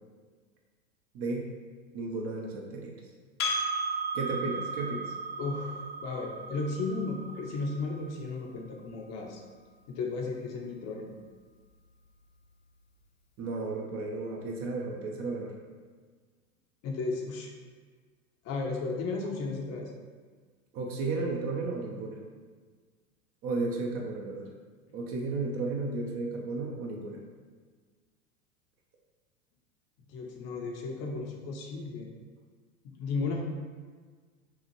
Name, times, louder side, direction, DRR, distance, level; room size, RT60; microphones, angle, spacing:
voice 1, 1.1-1.5 1.9-2.9 4.1-5.1 13.4-15.6 20.7-22.2 23.4-24.5 24.9-27.2, right 3 dB, 35° right, 0 dB, 0.6 m, -33 dB
Percussion, 3.4-8.2, right 2 dB, 80° left, 1.1 m, -35 dB
voice 2, 5.4-9.4 9.9-11.1 16.8-17.5 18.4-19.9 30.1-32.1 32.8-33.5, left 3 dB, 40° left, 0 dB, 0.7 m, -34 dB
5.5 x 2.4 x 3.0 m, 1.5 s
hypercardioid pair, 95°, 42 cm